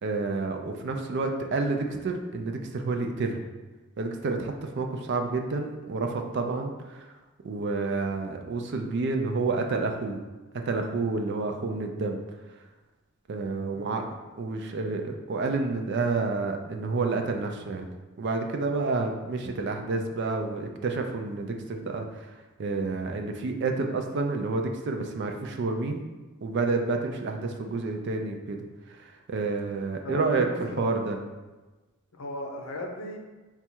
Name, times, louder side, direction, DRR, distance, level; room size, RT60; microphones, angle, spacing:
voice 1, 0.0-3.4 4.0-7.1 7.4-10.2 10.6-12.2 13.3-14.0 14.4-17.9 18.2-22.3 22.6-26.0 26.4-31.2, right 3 dB, 55° right, 4 dB, 0.4 m, -29 dB
voice 2, 13.7-14.1 30.0-30.6 30.9-31.0 32.2-33.2, left 1 dB, 80° left, 2 dB, 0.7 m, -36 dB
4.0 x 2.3 x 4.4 m, 1.2 s
head